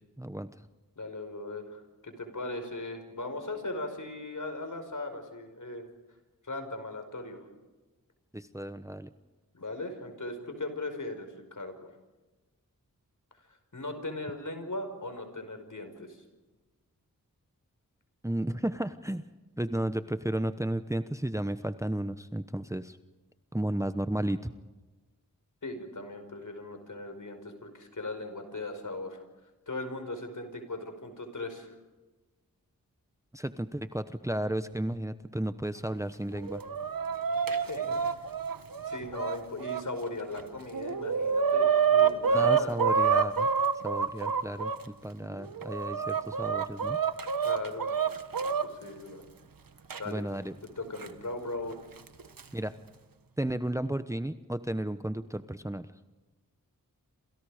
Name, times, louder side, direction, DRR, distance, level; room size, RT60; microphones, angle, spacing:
voice 1, 0.2-0.5 8.3-9.1 18.2-19.2 19.6-23.0 23.5-24.5 33.3-36.6 42.3-43.5 43.8-47.0 50.0-50.5 52.5-52.7 53.4-55.9, right 1 dB, 10° right, 11 dB, 1.0 m, -33 dB
voice 2, 1.0-5.9 6.4-7.5 9.5-11.9 13.7-16.2 25.6-29.2 29.7-31.7 37.5-38.0 38.9-43.1 47.4-47.9 48.6-49.2 50.0-50.2 50.8-51.8, left 2 dB, 60° left, 7 dB, 5.3 m, -38 dB
Chicken rooster, 36.3-39.8 40.4-40.5 40.7-44.8 45.4-48.6 49.9-50.0 51.0-51.1 52.1-52.4, right 6 dB, 75° right, 1.4 m, -27 dB
28.5 x 27.5 x 5.1 m, 1.2 s
cardioid pair, 50°, 35 cm